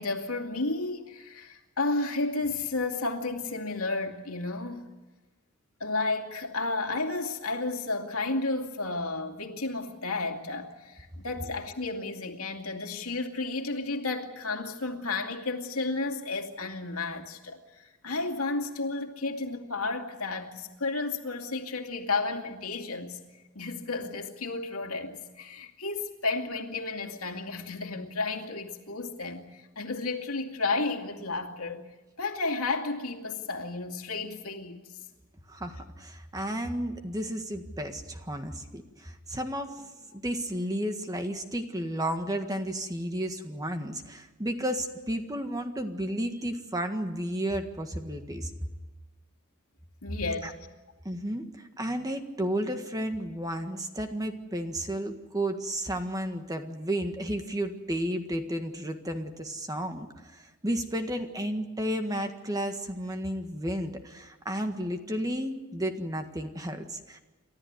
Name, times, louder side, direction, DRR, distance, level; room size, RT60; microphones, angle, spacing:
voice 1, 0.0-4.9 5.8-23.2 23.5-31.8 32.2-34.8 50.0-50.5, left 3 dB, 85° left, 2.5 m, -32 dB
voice 2, 35.5-48.5 50.4-50.5 51.0-67.2, right 1 dB, 15° right, 1.7 m, -32 dB
29.5 x 13.5 x 9.6 m
head